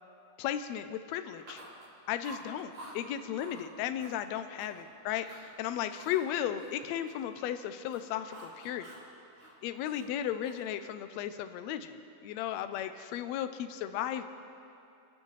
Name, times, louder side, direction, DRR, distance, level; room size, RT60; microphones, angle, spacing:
voice 1, 0.4-1.6 2.1-8.9 9.6-14.2, left 10 dB, 85° left, 10 dB, 1.5 m, -35 dB
Chewing mastication, 1.4-1.9 2.2-3.0 3.3-3.6 4.0-4.8 5.2-5.5 5.9-7.5 7.8-9.1 9.3-10.7, right 1 dB, 65° right, 5.4 m, -50 dB
28.0 x 10.5 x 3.2 m, 2.7 s
omnidirectional pair, 3.6 m